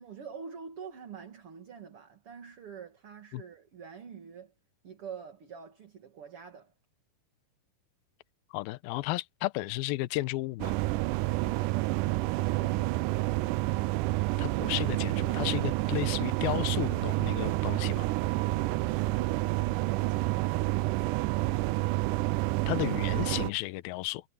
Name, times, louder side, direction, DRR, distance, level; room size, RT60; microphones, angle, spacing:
voice 1, 0.0-4.5 4.8-6.7 11.6-13.2 18.4-21.2, right 7 dB, 40° right, 2.7 m, -46 dB
voice 2, 8.5-10.7 14.4-18.1 22.7-24.2, left 19 dB, 85° left, 2.5 m, -33 dB
sound 1, 10.6-23.5, right 19 dB, 90° right, 1.8 m, -29 dB
omnidirectional pair, 4.3 m